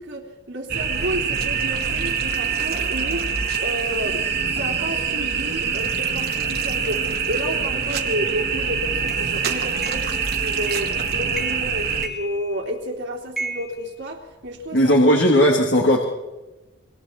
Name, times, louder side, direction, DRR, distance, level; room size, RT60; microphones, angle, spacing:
voice 1, 0.0-3.3 3.6-14.9 15.4-15.5, equal, 65° right, -2 dB, 3.3 m, -31 dB
sound 1, 0.7-12.1, right 6 dB, 50° right, 2.2 m, -25 dB
sound 2, 9.1-9.2 9.8-10.2 10.7-11.0 11.3-11.7 12.0-12.8 13.4-14.6, right 2 dB, ahead, 2.4 m, -34 dB
voice 2, 14.7-16.0, equal, 60° left, 0 dB, 3.0 m, -16 dB
27.0 x 24.5 x 4.6 m, 1.1 s
head